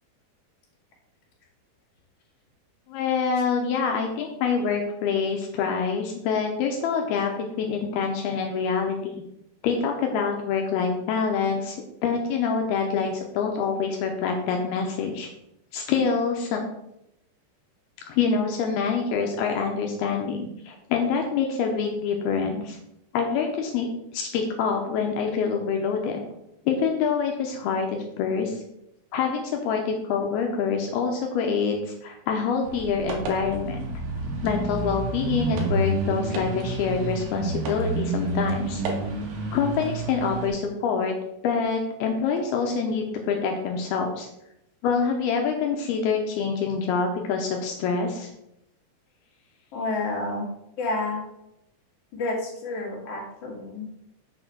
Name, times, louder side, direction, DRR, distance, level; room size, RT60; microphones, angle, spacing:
voice 1, 2.9-9.2 9.6-11.8 12.0-15.3 15.7-16.6 18.1-22.8 23.1-26.2 26.7-28.6 29.1-33.8 34.4-38.8 39.5-41.2 41.4-44.3 44.8-48.3, left 5 dB, 80° left, 2 dB, 2.5 m, -26 dB
sound 1, 32.6-40.5, right 2 dB, 65° right, 2.8 m, -29 dB
voice 2, 49.7-50.5 50.8-51.2 52.1-53.8, left 2 dB, 45° left, -3 dB, 2.4 m, -30 dB
6.7 x 4.4 x 6.0 m, 0.81 s
omnidirectional pair, 4.7 m